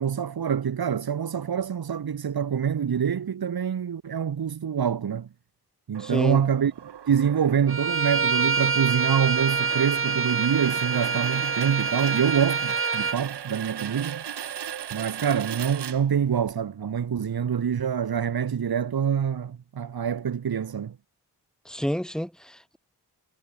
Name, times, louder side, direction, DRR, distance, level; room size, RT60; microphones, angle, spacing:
voice 1, 0.0-5.3 5.9-6.7 7.1-14.2 14.9-21.0, right 8 dB, 65° right, 1.8 m, -26 dB
sound 1, 5.9-16.5, right 9 dB, 85° right, 2.5 m, -38 dB
voice 2, 6.0-6.4 21.6-22.8, equal, ahead, 2.8 m, -29 dB
Bowed string instrument, 7.7-13.2, right 4 dB, 30° right, 1.3 m, -26 dB
cardioid pair, 60°, 40 cm